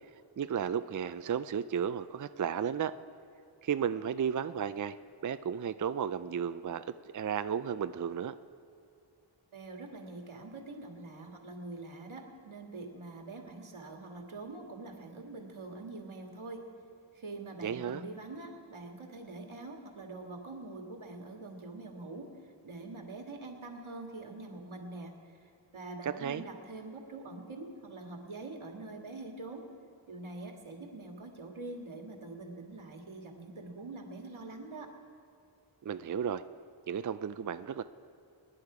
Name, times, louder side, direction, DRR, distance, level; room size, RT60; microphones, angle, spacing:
voice 1, 0.4-2.9 3.6-5.0 5.2-6.8 7.1-8.3 17.6-18.0 26.0-26.4 35.8-36.4 36.9-37.8, right 8 dB, 40° right, 12 dB, 0.4 m, -33 dB
voice 2, 9.5-16.7 17.1-25.4 25.7-29.6 30.1-34.9, right 2 dB, 90° right, 3 dB, 1.8 m, -44 dB
25.0 x 10.0 x 4.9 m, 2.5 s
wide cardioid pair, 70°, 47 cm